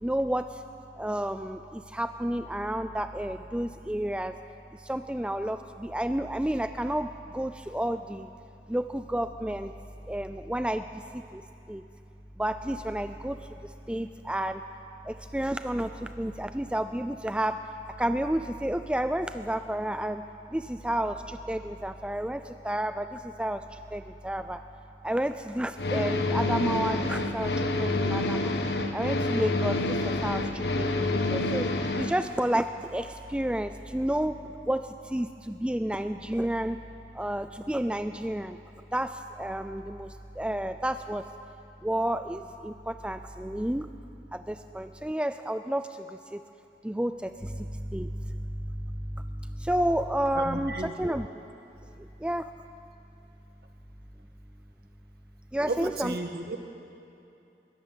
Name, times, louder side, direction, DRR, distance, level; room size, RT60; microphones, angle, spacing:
voice 1, 0.0-0.6 1.0-4.4 4.8-8.3 8.7-9.7 10.1-11.4 11.7-11.8 12.4-13.4 13.9-14.6 15.0-17.6 18.0-20.2 20.5-24.6 25.0-28.6 28.9-31.7 32.0-34.4 34.7-36.8 37.1-38.6 38.9-41.3 41.8-43.9 44.3-46.4 46.8-51.3 52.0-52.5 55.5-56.1, right 1 dB, 5° right, 9 dB, 0.4 m, -31 dB
sound 1, 25.8-32.1, left 2 dB, 75° left, 1.5 m, -28 dB
voice 2, 50.3-51.2 55.7-56.6, right 2 dB, 60° right, 5 dB, 1.7 m, -34 dB
22.0 x 18.0 x 7.4 m, 2.7 s
head